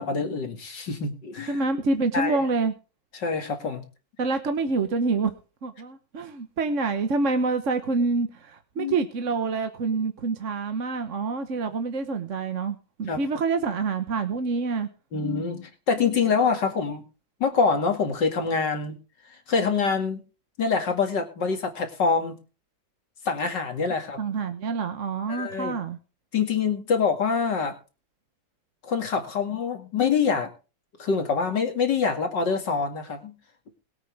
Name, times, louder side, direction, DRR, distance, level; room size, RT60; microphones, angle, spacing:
voice 1, 0.0-1.6 2.1-2.4 3.1-3.8 8.8-9.0 13.1-13.2 15.1-17.0 17.4-19.0 19.5-20.2 20.6-22.4 23.3-24.2 25.3-25.8 26.3-27.7 28.8-30.5 31.0-33.3, left 5 dB, 70° left, 5 dB, 2.9 m, -25 dB
voice 2, 1.5-2.7 4.2-5.3 5.6-14.9 24.2-26.0, right 4 dB, 45° right, 8 dB, 1.4 m, -27 dB
22.0 x 8.8 x 3.5 m, 0.34 s
omnidirectional pair, 2.0 m